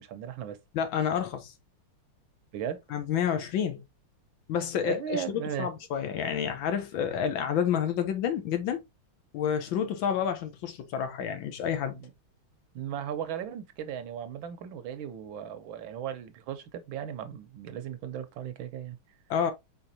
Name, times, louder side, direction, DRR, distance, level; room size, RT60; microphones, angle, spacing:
voice 1, 0.0-0.6 2.5-2.8 4.8-5.7 11.9-12.1 12.7-19.0, right 9 dB, 75° right, 1.4 m, -36 dB
voice 2, 0.7-1.5 2.9-3.8 4.5-8.8 9.3-12.0 19.3-19.5, left 8 dB, 70° left, 1.5 m, -29 dB
4.9 x 3.9 x 2.7 m
omnidirectional pair, 2.4 m